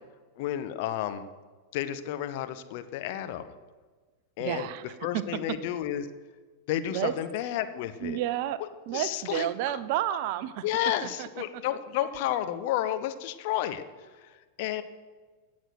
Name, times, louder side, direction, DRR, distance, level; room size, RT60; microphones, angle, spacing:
voice 1, 0.4-1.3 1.7-3.5 4.4-4.7 5.0-6.1 6.7-8.2 8.9-9.5 10.6-13.8 14.2-14.8, left 12 dB, 50° left, 10 dB, 0.9 m, -31 dB
voice 2, 4.4-4.8 5.1-5.2 6.9-7.1 8.0-10.6 11.0-11.3, right 12 dB, 45° right, 15 dB, 0.6 m, -30 dB
17.0 x 6.3 x 6.3 m, 1.4 s
figure-of-eight pair, 90°, 0 cm